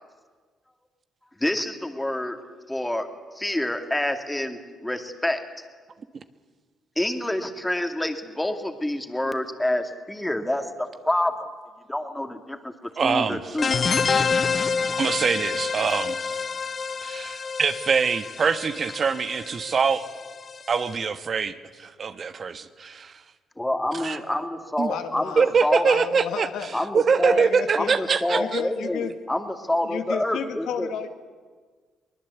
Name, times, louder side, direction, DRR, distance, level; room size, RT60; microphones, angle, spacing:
voice 1, 1.4-2.4 2.7-3.1 3.3-5.4 7.0-11.5 11.9-12.7 13.0-13.8 23.6-25.9 26.7-27.5 27.8-30.9, left 1 dB, 10° left, 6 dB, 2.3 m, -27 dB
voice 2, 13.0-13.6 15.0-16.4 17.0-20.0 20.7-23.1 24.0-24.2 24.8-24.9 25.4-26.5 26.9-28.6, right 5 dB, 45° right, 11 dB, 1.2 m, -24 dB
sound 1, 13.6-20.9, left 5 dB, 40° left, 0.6 m, -28 dB
voice 3, 24.9-25.5 25.8-26.8 27.2-27.9 28.3-29.1 29.8-31.1, left 8 dB, 80° left, 8 dB, 1.6 m, -32 dB
23.0 x 20.0 x 8.3 m, 1.5 s
cardioid pair, 90°, 0 cm